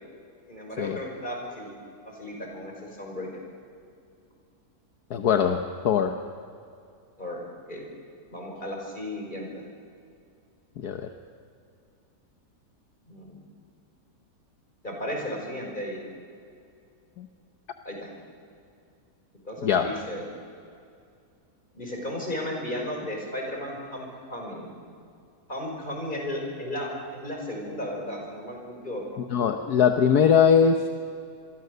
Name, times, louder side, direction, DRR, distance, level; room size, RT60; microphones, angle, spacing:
voice 1, 0.5-1.7 2.1-3.3 7.2-7.4 7.7-7.8 8.3-9.5 13.1-13.4 14.8-16.0 17.9-18.1 19.4-20.2 21.7-24.8 25.5-29.2, left 1 dB, 30° left, 0 dB, 5.9 m, -34 dB
voice 2, 5.1-6.1 10.8-11.1 17.2-17.3 19.6-19.9 29.2-30.9, left 7 dB, 70° left, 6 dB, 1.6 m, -21 dB
27.5 x 23.0 x 6.8 m, 2.4 s
omnidirectional pair, 1.8 m